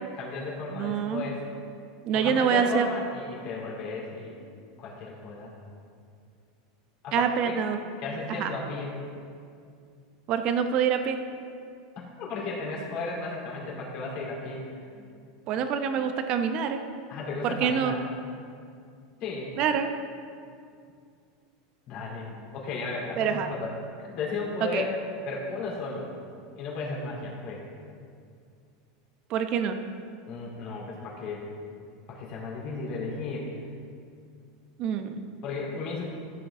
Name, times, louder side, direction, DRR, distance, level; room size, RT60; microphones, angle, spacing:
voice 1, 0.1-1.4 2.1-4.4 4.8-5.5 7.0-7.5 8.0-8.9 12.2-15.1 17.1-18.0 19.2-19.5 21.9-23.7 24.0-24.9 25.2-26.1 26.5-27.6 30.3-31.5 32.1-33.5 35.4-36.1, left 3 dB, 45° left, -4 dB, 3.0 m, -34 dB
voice 2, 0.7-1.2 2.0-2.9 7.1-7.8 8.3-8.5 10.3-11.2 15.5-16.8 17.4-18.0 19.6-19.9 23.2-23.5 24.6-24.8 29.3-29.8 34.8-35.3, right 7 dB, 45° right, 7 dB, 0.8 m, -26 dB
14.5 x 7.8 x 3.8 m, 2.3 s
supercardioid pair, 140°, 2 cm